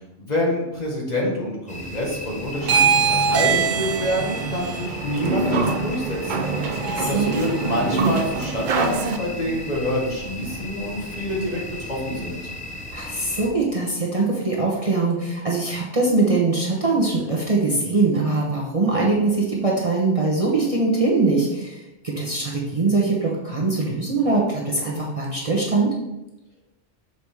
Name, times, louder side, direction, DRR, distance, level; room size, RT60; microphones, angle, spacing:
voice 1, 0.2-6.5 7.0-11.6 11.9-12.4, left 1 dB, 35° left, -3 dB, 1.5 m, -27 dB
sound 1, 1.7-13.5, left 1 dB, 5° left, 0.9 m, -36 dB
sound 2, 2.6-9.2, right 5 dB, 55° right, 0.5 m, -23 dB
voice 2, 6.9-7.4 12.9-25.9, right 3 dB, 30° right, -4 dB, 1.0 m, -22 dB
6.7 x 4.8 x 3.5 m, 0.94 s
omnidirectional pair, 1.2 m